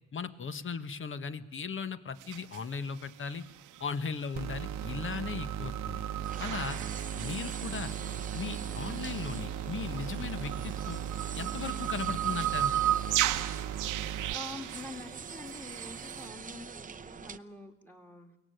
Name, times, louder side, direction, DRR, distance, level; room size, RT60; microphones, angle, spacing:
voice 1, 0.1-3.4 3.8-6.0 6.4-6.8 7.2-7.9 8.3-11.0 11.4-12.7, left 5 dB, 40° left, 12 dB, 1.4 m, -37 dB
sound 1, 2.2-16.3, right 13 dB, 90° right, 1.0 m, -36 dB
sound 2, 4.3-14.3, right 10 dB, 65° right, 0.9 m, -37 dB
sound 3, 6.2-17.4, right 6 dB, 25° right, 0.8 m, -44 dB
voice 2, 14.3-18.4, left 1 dB, 5° left, 5 dB, 2.5 m, -46 dB
22.5 x 18.0 x 9.3 m, 1.0 s
cardioid pair, 90°, 30 cm